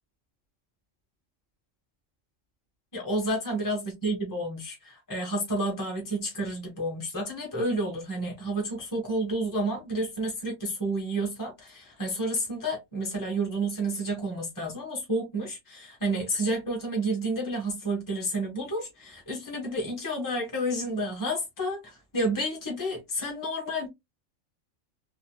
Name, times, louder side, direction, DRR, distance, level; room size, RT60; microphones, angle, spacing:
voice 1, 2.9-23.9, right 1 dB, 15° left, 1.2 m, -30 dB
3.9 x 2.8 x 2.2 m
omnidirectional pair, 1.3 m